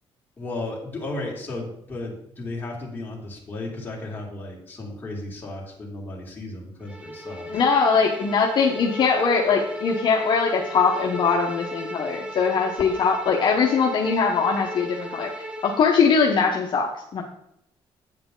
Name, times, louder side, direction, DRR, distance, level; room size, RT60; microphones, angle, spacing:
voice 1, 0.4-7.5, left 2 dB, 20° left, -3 dB, 2.4 m, -34 dB
Bowed string instrument, 6.9-16.0, equal, 10° right, 0.8 m, -35 dB
voice 2, 7.5-15.3 15.6-17.2, left 5 dB, 45° left, -1 dB, 0.9 m, -21 dB
8.9 x 7.7 x 3.8 m, 0.77 s
cardioid pair, 140°, 11 cm